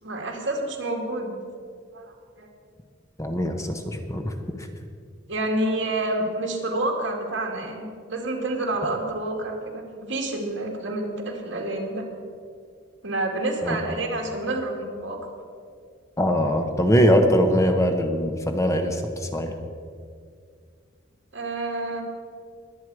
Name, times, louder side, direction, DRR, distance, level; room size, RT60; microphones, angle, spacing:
voice 1, 0.0-1.3 1.9-2.5 5.3-12.0 13.0-15.2 21.3-22.0, right 2 dB, 70° right, 1 dB, 2.3 m, -28 dB
voice 2, 3.2-4.3 13.6-13.8 16.2-19.5, equal, 15° left, 5 dB, 1.0 m, -22 dB
21.5 x 8.3 x 4.8 m, 2.1 s
head